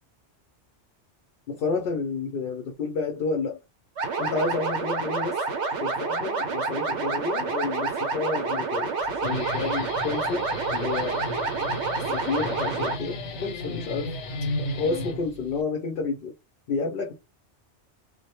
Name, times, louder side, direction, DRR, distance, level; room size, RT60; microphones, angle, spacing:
voice 1, 1.5-3.6 4.2-11.2 12.1-14.1 14.6-16.3 16.7-17.1, left 4 dB, 60° left, 0.7 m, -30 dB
sound 1, 4.0-13.0, right 4 dB, 80° right, 0.9 m, -28 dB
Guitar, 9.0-15.6, left 2 dB, 85° left, 0.9 m, -34 dB
2.2 x 2.1 x 2.8 m
omnidirectional pair, 1.2 m